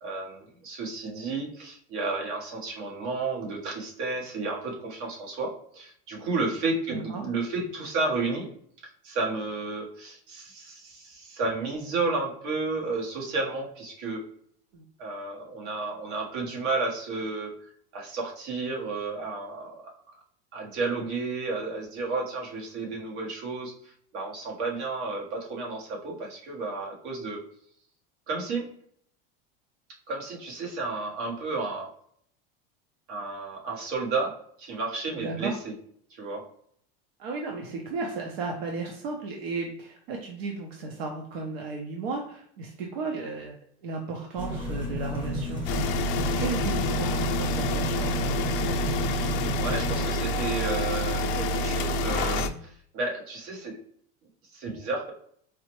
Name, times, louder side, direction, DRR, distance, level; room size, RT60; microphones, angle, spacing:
voice 1, 0.0-8.5 9.0-14.2 15.0-17.5 17.9-19.9 20.5-27.4 28.3-28.7 30.1-31.9 33.1-35.7 36.1-36.4 49.1-53.8 54.5-55.1, right 3 dB, 60° right, -1 dB, 1.2 m, -32 dB
voice 2, 6.9-7.2 14.7-14.8 35.1-35.5 37.2-43.5 43.8-45.6 46.4-48.8, right 3 dB, 85° right, 1 dB, 0.8 m, -34 dB
sound 1, 44.4-50.0, equal, 5° right, 0.8 m, -32 dB
sound 2, 45.7-52.5, left 1 dB, 60° left, 0.4 m, -27 dB
4.7 x 2.1 x 3.0 m, 0.63 s
supercardioid pair, 170°, 29 cm